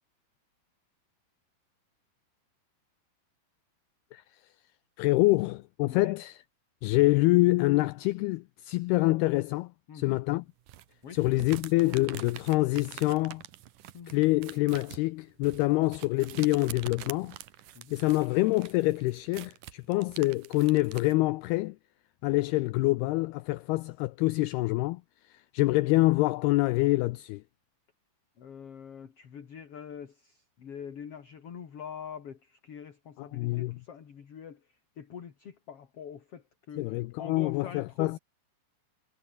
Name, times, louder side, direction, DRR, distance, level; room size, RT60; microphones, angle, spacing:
voice 1, 5.0-6.4 6.8-10.4 11.1-13.4 14.1-17.4 17.9-21.8 22.2-25.0 25.5-27.4 33.2-33.8 36.8-38.2, left 21 dB, 85° left, 2.3 m, -26 dB
voice 2, 9.9-10.2 11.0-11.2 13.9-14.2 17.7-17.9 20.3-20.4 28.4-34.7 35.0-38.2, left 7 dB, 40° left, 2.5 m, -44 dB
sound 1, 10.7-21.1, right 13 dB, 65° right, 2.1 m, -46 dB
omnidirectional pair, 5.1 m